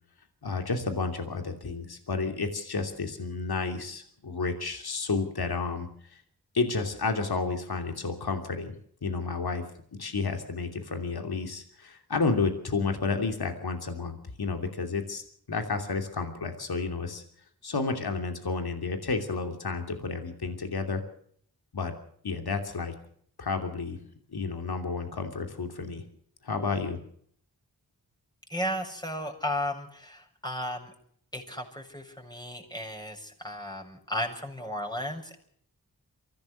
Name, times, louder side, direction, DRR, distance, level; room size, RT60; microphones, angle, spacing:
voice 1, 0.4-6.2 6.5-9.6 9.9-15.2 15.5-17.2 17.6-21.0 21.7-21.9 22.2-22.9 23.4-26.1 26.4-27.0, left 4 dB, 70° left, 6 dB, 3.0 m, -31 dB
voice 2, 28.5-30.9 31.3-35.4, left 1 dB, 10° left, 1 dB, 7.1 m, -34 dB
24.0 x 16.5 x 6.5 m, 0.63 s
cardioid pair, 40°, 38 cm